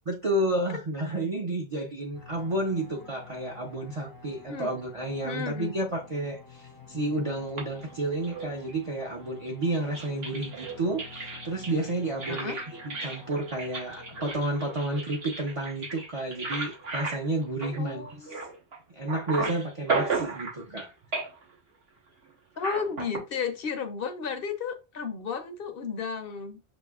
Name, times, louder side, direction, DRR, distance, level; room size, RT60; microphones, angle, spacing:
voice 1, 0.1-18.1 18.9-20.9, right 1 dB, 40° right, 0.6 m, -31 dB
sound 1, 2.1-14.3, left 4 dB, 35° left, 0.3 m, -50 dB
voice 2, 5.2-5.7 12.3-12.6 17.8-18.4 22.6-26.6, left 6 dB, 65° left, 0.7 m, -33 dB
sound 2, 7.6-8.9 9.5-18.8 19.1-20.9 21.1-21.5 22.6-23.2, right 3 dB, 65° right, 1.3 m, -35 dB
6.2 x 2.6 x 2.3 m
omnidirectional pair, 1.1 m